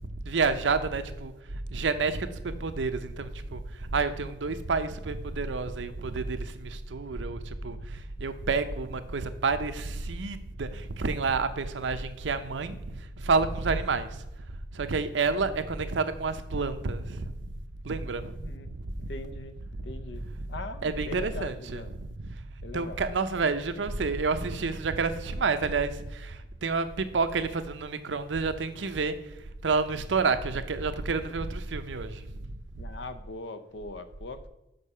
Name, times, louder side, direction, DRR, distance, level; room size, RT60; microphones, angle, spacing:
voice 1, 0.2-14.3 14.7-17.3 17.8-18.4 18.7-19.1 19.7-19.8 20.1-20.5 20.8-22.4 22.7-29.2 29.6-32.6, right 4 dB, 90° right, 10 dB, 0.6 m, -29 dB
voice 2, 18.3-18.7 19.0-19.5 19.8-22.0 22.6-23.0 32.8-34.5, left 2 dB, 70° left, 10 dB, 0.7 m, -41 dB
6.6 x 5.5 x 5.5 m, 0.95 s
head